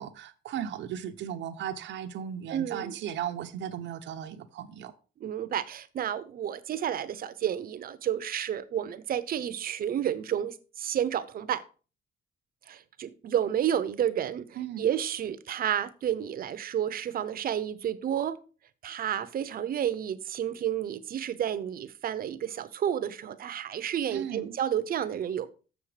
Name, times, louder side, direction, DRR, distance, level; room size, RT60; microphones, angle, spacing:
voice 1, 0.0-4.9 14.6-14.8 24.1-24.6, right 9 dB, 85° right, 0.8 m, -36 dB
voice 2, 2.5-3.0 5.2-11.6 12.7-18.4 18.8-25.5, right 10 dB, 50° right, 0.7 m, -31 dB
7.2 x 6.9 x 4.9 m
cardioid pair, 150°, 19 cm